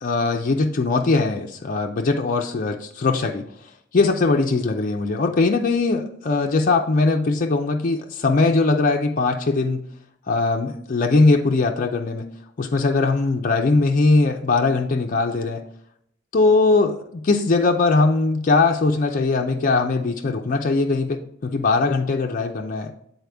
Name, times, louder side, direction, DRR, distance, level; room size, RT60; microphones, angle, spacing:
voice 1, 0.0-3.4 3.9-9.8 10.3-12.3 12.6-15.6 16.3-22.9, left 3 dB, 40° left, 2 dB, 0.4 m, -20 dB
8.0 x 4.1 x 3.4 m, 0.70 s
head